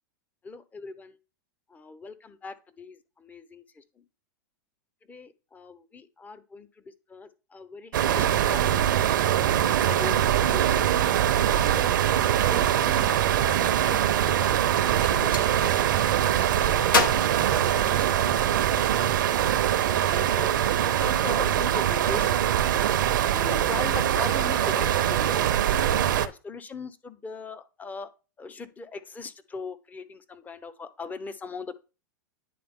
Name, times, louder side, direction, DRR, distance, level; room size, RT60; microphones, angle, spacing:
voice 1, 0.4-1.2 1.7-3.8 5.1-8.6 9.3-10.9 11.5-11.9 12.5-14.6 15.1-15.8 16.4-17.0 17.5-19.1 19.7-20.5 20.8-22.4 23.3-25.4 26.1-28.1 28.4-31.8, left 4 dB, 15° left, 12 dB, 0.6 m, -40 dB
sound 1, 7.9-26.3, right 11 dB, 70° right, 0.6 m, -23 dB
Gunshot gunfire, 15.0-15.5 16.9-18.4, left 4 dB, 90° left, 1.1 m, -28 dB
9.3 x 3.4 x 3.5 m, 0.32 s
hypercardioid pair, 110°, 11 cm